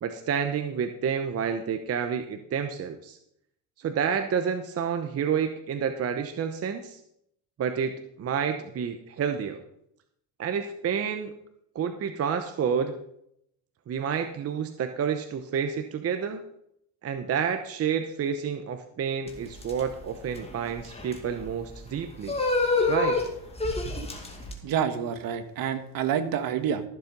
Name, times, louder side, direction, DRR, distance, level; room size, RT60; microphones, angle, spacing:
voice 1, 0.0-3.2 3.8-7.0 7.6-7.9 8.2-9.6 10.4-11.3 11.7-12.9 13.9-16.4 17.0-22.3 22.9-23.2, right 7 dB, 35° right, 7 dB, 0.9 m, -29 dB
sound 1, 19.3-24.5, left 3 dB, 15° left, 2.3 m, -28 dB
voice 2, 24.6-26.8, right 8 dB, 55° right, 9 dB, 1.5 m, -28 dB
14.0 x 7.4 x 5.3 m, 0.74 s
cardioid pair, 130°, 41 cm